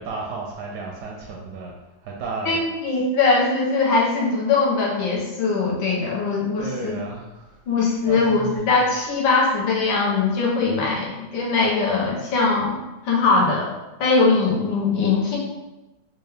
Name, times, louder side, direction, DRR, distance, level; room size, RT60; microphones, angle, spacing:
voice 1, 0.0-1.7 2.0-2.6 6.0-6.1 6.6-7.6 8.1-8.7, right 4 dB, 75° right, -1 dB, 1.0 m, -33 dB
voice 2, 2.5-7.0 7.7-12.8 13.0-13.7 14.0-15.4, left 4 dB, 75° left, -3 dB, 1.5 m, -21 dB
4.6 x 2.3 x 3.2 m, 1.0 s
omnidirectional pair, 2.2 m